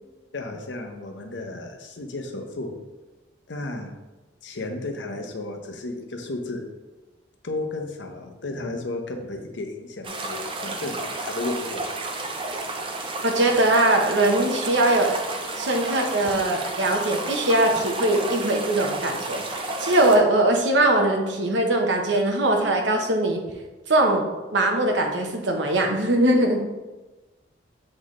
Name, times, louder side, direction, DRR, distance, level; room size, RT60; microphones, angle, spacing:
voice 1, 0.3-2.7 3.5-3.9 4.4-6.6 7.4-11.9, left 2 dB, 75° left, 4 dB, 0.8 m, -33 dB
sound 1, 10.0-20.2, right 2 dB, 30° right, 0.5 m, -31 dB
voice 2, 13.2-15.2 15.5-23.4 23.9-26.6, right 1 dB, 75° right, 2 dB, 1.0 m, -21 dB
7.4 x 4.1 x 3.1 m, 1.1 s
head